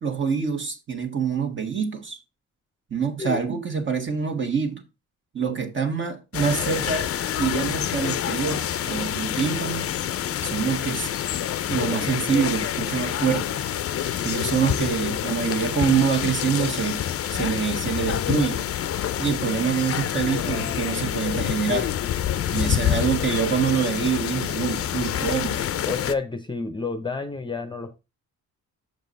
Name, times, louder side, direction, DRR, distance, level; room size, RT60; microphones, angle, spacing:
voice 1, 0.0-2.2 2.9-4.8 5.3-9.9 10.4-11.1 11.7-13.7 14.2-17.0 17.3-18.6 19.2-21.9 22.5-25.7, right 6 dB, 40° right, 1.5 m, -25 dB
sound 1, 6.3-26.1, left 10 dB, 50° left, 0.5 m, -27 dB
voice 2, 25.8-28.0, left 3 dB, 15° left, 0.7 m, -30 dB
6.6 x 5.2 x 4.0 m
cardioid pair, 90°, 30 cm